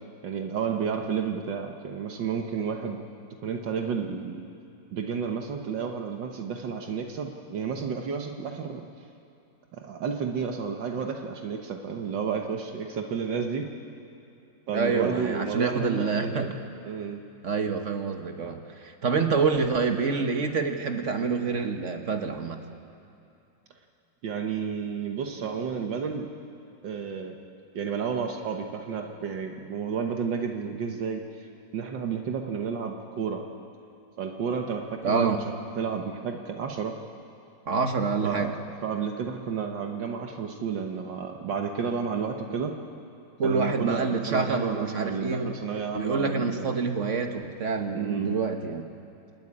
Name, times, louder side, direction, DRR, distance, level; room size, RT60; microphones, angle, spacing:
voice 1, 0.2-3.0 3.4-4.4 4.9-8.9 9.7-13.7 14.7-16.6 16.8-17.2 24.2-26.3 26.8-27.4 27.7-31.5 31.7-33.4 34.2-37.0 38.2-38.5 38.8-42.7 43.4-46.8 48.0-48.4, right 6 dB, 75° right, 3 dB, 1.8 m, -31 dB
voice 2, 14.7-16.5 17.4-22.6 35.0-35.4 37.7-38.5 43.4-45.5 45.9-48.9, right 4 dB, 45° right, 6 dB, 1.3 m, -27 dB
28.0 x 9.5 x 9.7 m, 2.8 s
omnidirectional pair, 2.0 m